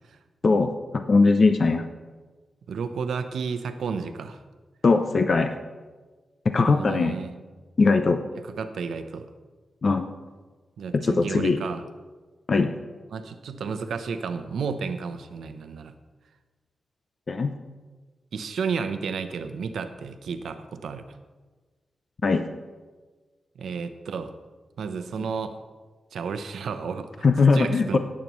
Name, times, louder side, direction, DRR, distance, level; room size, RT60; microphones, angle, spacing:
voice 1, 0.4-1.8 4.8-5.5 6.5-7.2 7.8-8.2 9.8-10.1 10.9-11.6 12.5-12.7 17.3-17.5 22.2-22.4 27.2-28.0, left 4 dB, 40° left, 7 dB, 0.5 m, -20 dB
voice 2, 2.7-4.4 6.5-7.3 8.6-9.3 10.8-11.8 13.1-15.9 18.3-21.2 23.6-24.3 24.8-25.6 26.1-27.2 27.5-28.0, right 5 dB, 85° right, 9 dB, 0.7 m, -32 dB
17.5 x 8.5 x 3.1 m, 1.3 s
wide cardioid pair, 170°, 0 cm